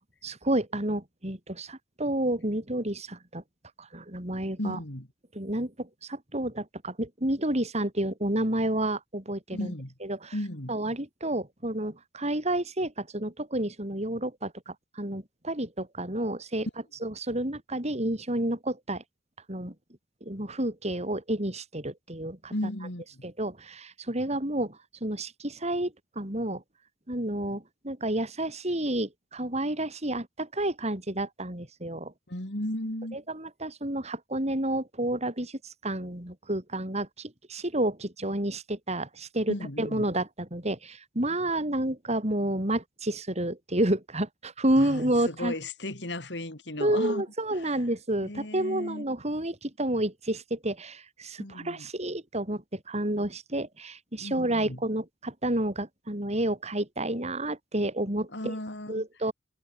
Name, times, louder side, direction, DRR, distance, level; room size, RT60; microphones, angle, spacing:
voice 1, 0.0-3.4 3.8-4.8 5.3-9.7 10.0-10.3 10.7-16.7 17.0-19.0 19.5-19.7 20.2-22.5 23.2-26.6 27.1-32.1 33.1-45.5 46.8-58.5 58.9-59.3, right 1 dB, 40° right, 5.8 m, -30 dB
voice 2, 4.6-5.1 9.5-9.9 10.3-10.7 22.5-23.2 32.3-33.2 39.5-40.1 44.8-47.8 48.2-49.1 51.4-51.9 54.2-54.8 58.3-59.1, left 1 dB, 70° left, 4.6 m, -35 dB
head